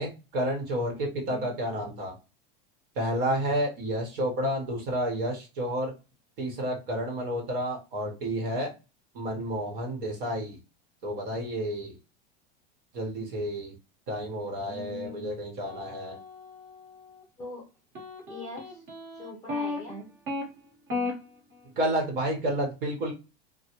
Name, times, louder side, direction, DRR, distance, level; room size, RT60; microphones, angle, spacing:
voice 1, 0.0-2.1 3.0-5.9 6.4-8.7 9.1-10.6 11.0-12.0 12.9-13.7 14.1-16.2 21.8-23.1, equal, 60° right, 0 dB, 1.1 m, -30 dB
voice 2, 1.3-1.6 14.7-15.3 17.4-17.7 18.2-18.8 19.1-20.0, left 3 dB, 10° left, -4 dB, 0.5 m, -41 dB
sound 1, 15.7-17.2 17.9-20.4 20.9-21.1, left 3 dB, 40° right, 1.1 m, -35 dB
3.0 x 2.1 x 2.9 m, 0.29 s
supercardioid pair, 160°, 30 cm